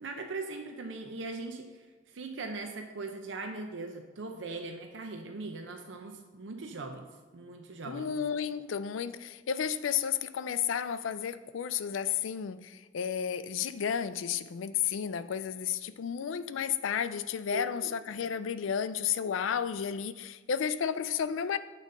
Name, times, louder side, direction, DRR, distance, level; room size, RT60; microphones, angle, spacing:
voice 1, 0.0-7.1 7.3-8.2 17.5-17.9, right 3 dB, 75° right, 0.6 m, -40 dB
voice 2, 7.8-21.6, left 8 dB, 85° left, 0.4 m, -32 dB
8.3 x 4.1 x 5.2 m
head